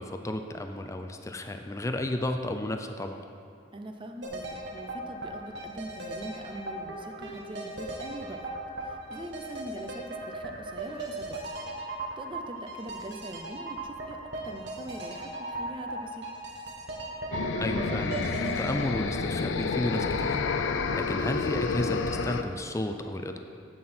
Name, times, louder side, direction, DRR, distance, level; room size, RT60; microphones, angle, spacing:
voice 1, 0.0-3.3 17.6-20.4 20.9-23.4, left 1 dB, 15° left, 6 dB, 0.4 m, -32 dB
voice 2, 3.7-8.5 8.8-11.4 12.2-16.3, right 1 dB, 25° right, 5 dB, 0.6 m, -42 dB
sound 1, 4.2-20.2 20.5-20.6, right 2 dB, 60° right, 1.2 m, -38 dB
sound 2, 17.3-22.4, left 4 dB, 80° left, 0.5 m, -29 dB
11.0 x 7.8 x 4.4 m, 2.4 s
head